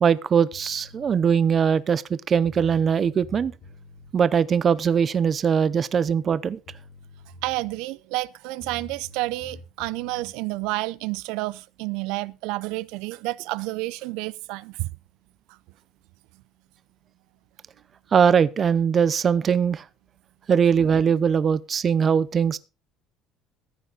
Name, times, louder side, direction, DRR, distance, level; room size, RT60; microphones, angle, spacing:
voice 1, 0.0-3.5 4.1-6.6 18.1-19.8 20.5-22.6, right 7 dB, 30° right, 0.6 m, -21 dB
sound 1, 0.5-1.1 2.1-2.2 2.4-4.1 6.3-6.4 6.7-7.9 8.6-10.3, left 2 dB, 45° left, 2.7 m, -46 dB
voice 2, 7.4-14.9, right 20 dB, 85° right, 0.5 m, -30 dB
14.5 x 9.0 x 3.9 m
cardioid pair, 150°, 0 cm